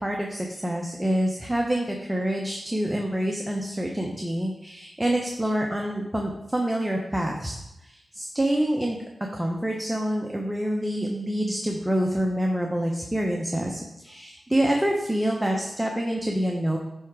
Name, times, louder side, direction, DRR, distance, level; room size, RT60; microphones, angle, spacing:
voice 1, 0.0-9.0 9.3-16.8, right 1 dB, 10° right, 0 dB, 0.9 m, -27 dB
9.7 x 3.5 x 4.8 m, 0.90 s
cardioid pair, 65°, 0 cm